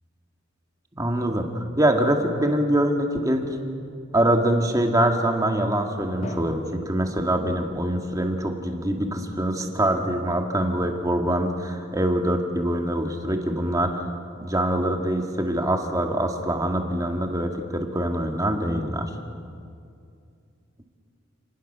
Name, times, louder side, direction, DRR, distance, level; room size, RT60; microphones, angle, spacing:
voice 1, 1.0-3.5 4.1-14.1 14.4-19.1, right 1 dB, 15° right, 3 dB, 2.0 m, -24 dB
Drum, 6.2-8.1, equal, 35° left, 1.7 m, -40 dB
29.5 x 19.0 x 6.9 m, 2.4 s
head